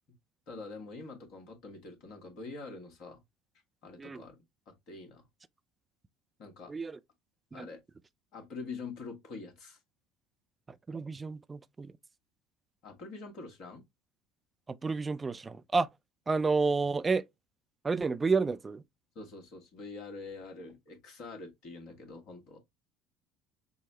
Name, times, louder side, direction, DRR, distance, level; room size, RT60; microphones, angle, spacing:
voice 1, 0.5-3.2 3.8-4.4 4.7-5.2 6.4-6.7 7.5-7.8 8.3-9.8 12.8-13.8 19.1-22.6, left 3 dB, 50° left, 1.4 m, -45 dB
voice 2, 6.7-7.0 7.5-7.7 10.9-11.9 14.7-15.9 16.3-17.3 17.8-18.8, right 4 dB, 20° right, 0.4 m, -30 dB
6.1 x 2.1 x 2.9 m
figure-of-eight pair, 60°, 0 cm